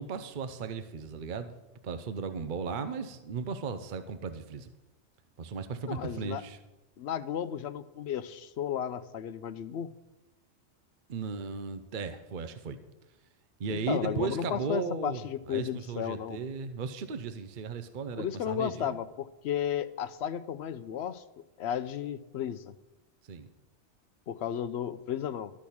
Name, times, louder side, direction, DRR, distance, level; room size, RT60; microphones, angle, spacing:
voice 1, 0.0-1.5 1.8-4.7 5.4-6.6 11.1-12.8 13.6-15.2 15.5-19.0 23.2-23.5, right 5 dB, 50° right, 10 dB, 0.8 m, -36 dB
voice 2, 5.9-6.4 7.0-9.9 13.7-16.4 18.2-21.2 21.6-22.7 24.3-25.5, left 9 dB, 70° left, 13 dB, 0.9 m, -34 dB
12.5 x 6.2 x 8.5 m, 1.0 s
omnidirectional pair, 1.2 m